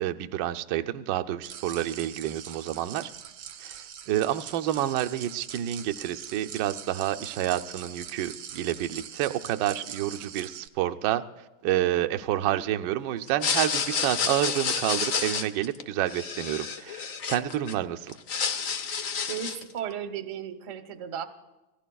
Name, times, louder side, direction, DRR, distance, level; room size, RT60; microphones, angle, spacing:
voice 1, 0.0-3.1 3.6-11.2 11.6-18.1, right 13 dB, 70° right, 8 dB, 1.1 m, -29 dB
sound 1, 1.4-10.7, right 9 dB, 90° right, 1.8 m, -43 dB
sound 2, 13.3-17.7 18.1-19.7, left 6 dB, 60° left, 0.9 m, -29 dB
voice 2, 19.3-21.3, right 8 dB, 50° right, 8 dB, 1.0 m, -35 dB
26.5 x 19.0 x 2.3 m, 1.1 s
omnidirectional pair, 2.3 m